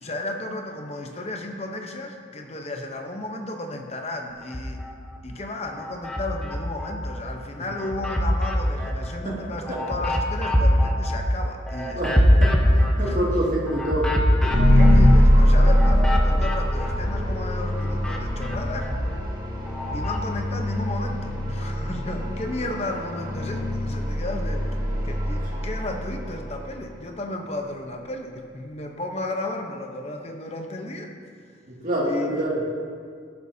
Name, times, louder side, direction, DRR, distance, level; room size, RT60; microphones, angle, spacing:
voice 1, 0.0-4.8 5.2-12.0 13.0-13.2 14.7-18.9 19.9-24.6 25.0-31.1 32.0-32.3, left 2 dB, 35° left, 3 dB, 0.9 m, -33 dB
sound 1, 4.4-5.2 5.7-7.3 7.7-17.4 17.7-20.3, equal, 5° left, 0.7 m, -24 dB
voice 2, 11.9-14.1 14.4-14.5 31.7-32.6, right 1 dB, 45° right, -5 dB, 2.3 m, -27 dB
sound 2, 14.5-26.7, equal, 20° right, 2.2 m, -22 dB
12.5 x 11.5 x 2.8 m, 2.1 s
head